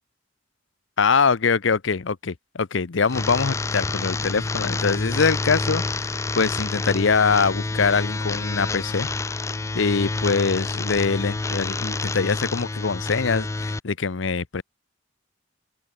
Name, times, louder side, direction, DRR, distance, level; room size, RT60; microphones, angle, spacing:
voice 1, 1.0-9.1 9.7-14.6, left 5 dB, 75° left, 0.7 m, -23 dB
sound 1, 3.1-13.8, left 3 dB, 15° left, 0.3 m, -28 dB
open air
head